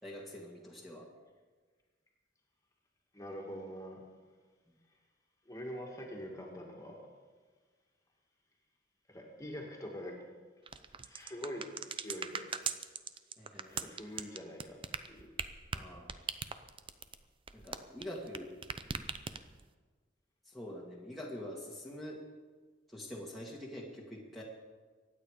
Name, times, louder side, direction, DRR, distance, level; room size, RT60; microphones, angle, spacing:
voice 1, 0.0-1.0 4.7-4.8 13.4-13.9 15.7-16.1 17.5-18.5 20.5-22.2 22.9-24.4, left 1 dB, ahead, -5 dB, 2.0 m, -45 dB
voice 2, 3.1-4.0 5.5-7.0 9.1-10.2 11.0-11.7 12.0-12.5 13.7-14.8 15.1-15.3, equal, 20° left, 0 dB, 2.2 m, -44 dB
sound 1, 10.7-18.4 18.6-19.7, right 6 dB, 30° right, 0.6 m, -39 dB
24.0 x 9.1 x 5.0 m, 1.4 s
head